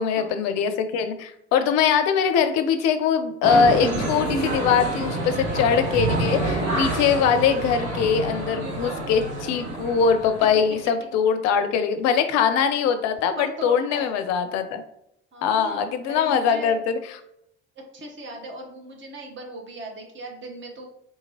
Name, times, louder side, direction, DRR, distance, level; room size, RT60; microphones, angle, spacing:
voice 1, 0.0-14.8 15.4-17.0, left 7 dB, 50° left, 9 dB, 0.5 m, -22 dB
sound 1, 3.4-10.8, right 1 dB, 80° right, 0.9 m, -27 dB
voice 2, 13.4-14.2 15.3-16.8 17.9-20.9, right 1 dB, 35° right, 1 dB, 1.0 m, -38 dB
3.7 x 2.8 x 2.7 m, 0.77 s
figure-of-eight pair, 50°, 34 cm